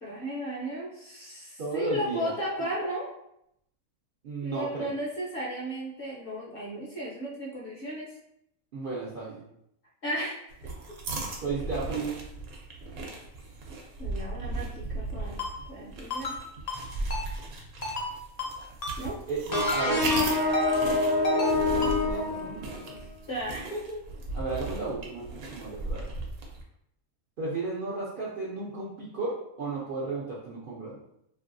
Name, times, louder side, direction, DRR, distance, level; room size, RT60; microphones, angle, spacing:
voice 1, 0.0-3.1 4.4-8.1 10.0-11.0 14.0-15.4 15.7-16.3 19.0-19.2 23.3-24.0, equal, 50° left, -4 dB, 0.8 m, -35 dB
voice 2, 1.6-2.3 4.2-4.9 8.7-9.4 11.4-12.1 19.3-20.5 21.2-22.9 24.3-26.1 27.4-31.0, right 3 dB, 60° right, -7 dB, 0.5 m, -34 dB
sound 1, 10.5-26.6, right 2 dB, 80° right, 1.1 m, -37 dB
Ringtone, 15.4-15.5 16.1-16.4 16.7-16.8 17.1-17.2 17.8-18.1 18.4-18.5 18.8-18.9 19.5-19.8 20.1-20.2 20.5-20.7 21.2-21.5 21.8-21.9, left 1 dB, 85° left, 0.3 m, -32 dB
sound 2, 19.5-23.0, left 3 dB, 25° left, 0.4 m, -26 dB
2.9 x 2.6 x 2.5 m, 0.77 s
omnidirectional pair, 1.5 m